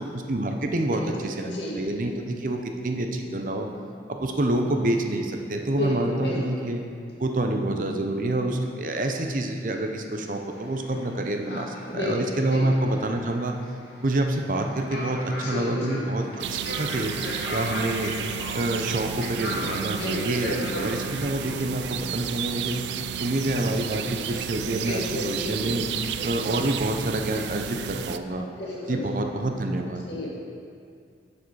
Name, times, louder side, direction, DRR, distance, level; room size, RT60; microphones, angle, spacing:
voice 1, 0.0-3.7 4.1-6.8 7.2-13.6 14.0-17.1 17.5-18.1 18.5-22.8 23.2-25.8 26.2-28.4 28.9-30.0, right 1 dB, 50° right, 4 dB, 0.6 m, -27 dB
voice 2, 1.4-1.8 5.7-6.4 11.5-12.6 15.4-16.0 19.8-20.9 24.8-25.5 28.6-29.0 30.1-30.3, left 1 dB, 85° left, -5 dB, 1.9 m, -32 dB
sound 1, 10.5-21.6, left 1 dB, 65° left, 1.5 m, -38 dB
sound 2, 16.4-28.2, right 8 dB, 80° right, 0.3 m, -32 dB
7.2 x 6.5 x 4.7 m, 2.3 s
head